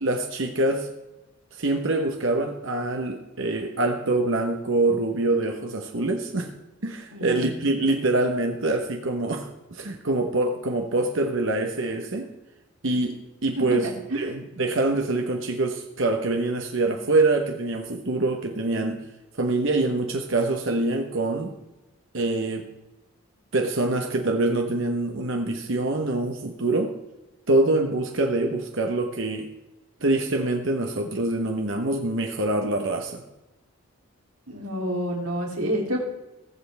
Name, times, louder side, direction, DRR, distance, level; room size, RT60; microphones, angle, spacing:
voice 1, 0.0-0.9 1.5-6.5 6.8-12.3 12.8-19.0 19.4-21.5 22.1-22.7 23.5-26.9 27.5-29.5 30.0-33.2, right 2 dB, 60° right, 3 dB, 1.1 m, -25 dB
voice 2, 7.1-7.4 13.8-14.3 34.5-36.0, equal, 80° right, -1 dB, 3.1 m, -29 dB
18.5 x 7.8 x 3.5 m, 1.0 s
head